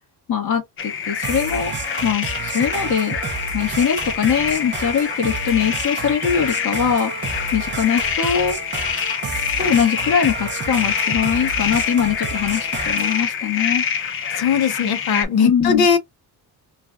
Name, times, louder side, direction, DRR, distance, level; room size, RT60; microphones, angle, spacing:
voice 1, 0.3-1.7 2.0-3.2 3.5-7.1 7.5-8.6 9.6-13.8 15.4-15.9, left 7 dB, 50° left, 1.5 m, -21 dB
sound 1, 0.8-15.2, left 7 dB, 35° left, 0.4 m, -26 dB
sound 2, 1.2-13.2, right 5 dB, 30° right, 0.5 m, -31 dB
voice 2, 14.3-16.0, left 6 dB, 70° left, 0.8 m, -19 dB
3.2 x 2.3 x 2.3 m
cardioid pair, 180°, 40 cm